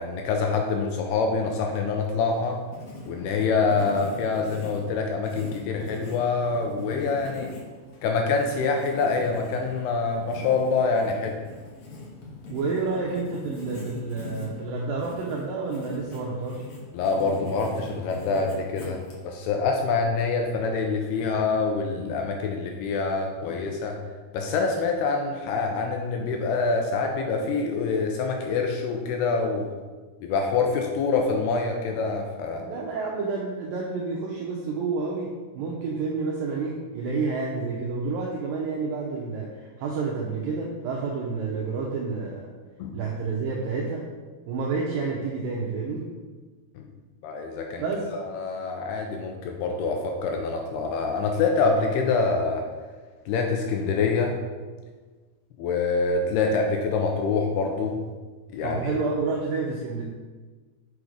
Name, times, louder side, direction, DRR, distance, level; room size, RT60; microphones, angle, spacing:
voice 1, 0.0-2.6 3.1-7.5 8.0-11.4 16.9-24.0 24.3-29.7 30.2-32.7 42.8-43.0 46.8-46.9 47.2-47.8 48.1-52.6 53.3-54.3 55.6-58.0 58.5-58.9, left 4 dB, 80° left, 2 dB, 2.5 m, -26 dB
Writing, 2.3-19.5, left 2 dB, 55° left, 2.1 m, -42 dB
voice 2, 12.5-16.7 32.6-42.5 42.9-44.1 44.5-46.1 47.8-48.1 58.6-60.0, right 4 dB, 80° right, -2 dB, 2.0 m, -29 dB
6.6 x 5.8 x 4.9 m, 1.4 s
omnidirectional pair, 5.0 m